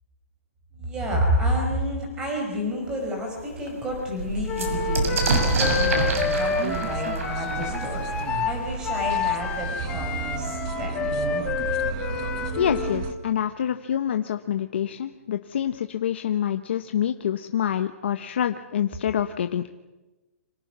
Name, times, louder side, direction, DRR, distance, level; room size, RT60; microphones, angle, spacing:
voice 1, 0.7-11.4, equal, 10° right, 1 dB, 5.4 m, -30 dB
sound 1, 2.5-2.6 3.1-3.2 3.4-9.0 10.0-10.1 10.3-10.9, right 3 dB, 70° right, 6.9 m, -28 dB
Wind instrument woodwind instrument, 4.5-13.0, left 6 dB, 10° left, 1.7 m, -29 dB
sound 2, 4.6-13.1, right 6 dB, 25° right, 1.3 m, -33 dB
voice 2, 12.6-19.7, left 9 dB, 50° left, 7 dB, 1.0 m, -26 dB
28.5 x 26.0 x 6.1 m, 1.1 s
hypercardioid pair, 175°, 8 cm